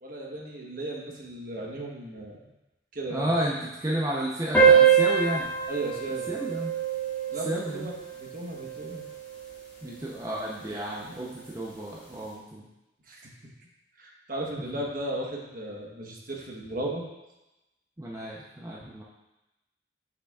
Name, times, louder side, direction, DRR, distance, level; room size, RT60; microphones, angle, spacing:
voice 1, 0.0-2.4 2.9-3.3 5.7-6.3 7.3-9.0 13.1-13.3 14.0-17.1, right 1 dB, 50° right, -1 dB, 1.1 m, -36 dB
voice 2, 3.1-5.5 6.3-6.7 7.3-7.9 9.8-12.7 14.7-14.8 18.0-19.0, right 1 dB, 20° right, -4 dB, 0.7 m, -32 dB
sound 1, 4.5-9.5, right 7 dB, 10° left, 2.1 m, -24 dB
7.9 x 6.9 x 2.4 m, 0.99 s
head